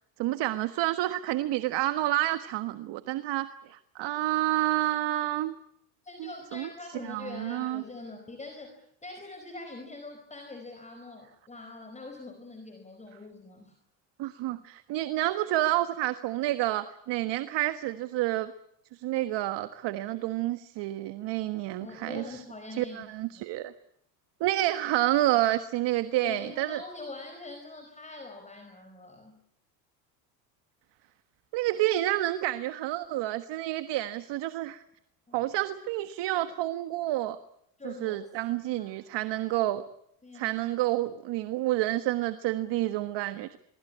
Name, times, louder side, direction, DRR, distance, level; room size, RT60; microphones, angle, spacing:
voice 1, 0.2-5.5 6.2-6.7 7.0-7.8 14.2-18.5 18.9-22.4 22.7-23.7 24.4-26.8 31.5-34.8 35.3-37.4 37.8-39.8 40.3-43.6, right 15 dB, 55° right, 12 dB, 1.5 m, -29 dB
voice 2, 6.0-13.7 21.8-23.4 26.2-29.4 35.3-35.5 37.8-38.3 38.8-39.0 40.2-40.6, left 2 dB, 15° left, 5 dB, 4.7 m, -44 dB
23.0 x 23.0 x 8.7 m, 0.74 s
supercardioid pair, 100°, 49 cm